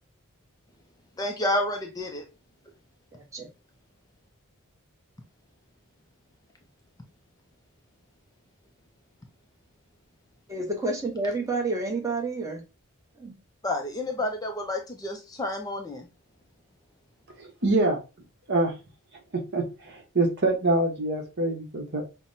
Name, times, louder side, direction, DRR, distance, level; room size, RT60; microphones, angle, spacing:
voice 1, 1.2-2.2 13.6-16.1, left 1 dB, 15° left, 0.4 m, -30 dB
voice 2, 3.1-3.5 10.5-12.6 13.2-13.3, right 3 dB, 15° right, 0.8 m, -29 dB
voice 3, 17.4-18.0 18.5-18.7 19.3-22.0, right 2 dB, 50° right, 1.0 m, -25 dB
5.6 x 2.1 x 2.6 m
head